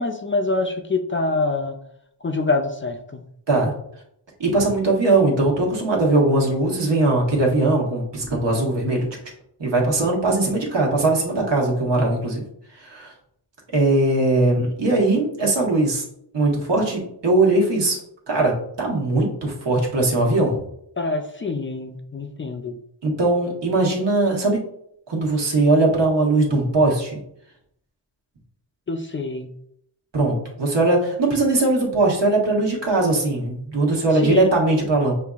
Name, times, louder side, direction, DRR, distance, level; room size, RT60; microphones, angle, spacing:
voice 1, 0.0-1.8 2.2-3.2 21.0-22.8 28.9-29.5 34.1-34.5, left 3 dB, 30° left, 4 dB, 0.4 m, -25 dB
voice 2, 4.4-9.1 9.6-12.4 12.8-13.1 13.7-16.0 16.3-18.0 18.3-20.6 23.0-24.6 25.1-27.2 30.1-35.1, right 2 dB, 75° right, -2 dB, 1.3 m, -20 dB
6.7 x 2.6 x 2.4 m, 0.72 s
wide cardioid pair, 130°, 43 cm